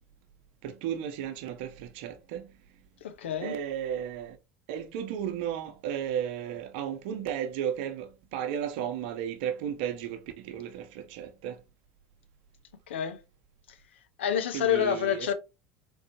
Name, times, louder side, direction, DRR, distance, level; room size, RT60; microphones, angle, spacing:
voice 1, 0.6-2.5 3.4-4.4 4.7-11.6 14.5-15.3, right 9 dB, 70° right, 0.8 m, -34 dB
voice 2, 3.0-3.5 12.9-13.2 14.2-15.3, left 9 dB, 80° left, 0.6 m, -28 dB
3.9 x 3.5 x 2.9 m
hypercardioid pair, 80°, 6 cm